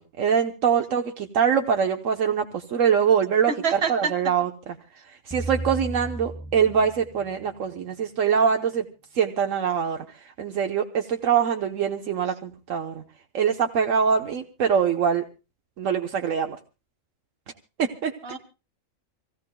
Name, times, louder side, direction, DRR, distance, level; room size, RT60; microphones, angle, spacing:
voice 1, 0.2-3.5 3.9-4.5 5.3-8.9 9.1-10.0 10.4-13.0 13.3-15.2 15.8-16.6 17.8-18.1, right 7 dB, 75° right, 4 dB, 1.3 m, -23 dB
voice 2, 3.5-4.3 18.2-18.4, right 6 dB, 50° right, 6 dB, 1.8 m, -27 dB
sound 1, 5.3-7.7, right 2 dB, 5° left, 2.1 m, -34 dB
27.0 x 16.5 x 2.2 m, 0.30 s
omnidirectional pair, 1.4 m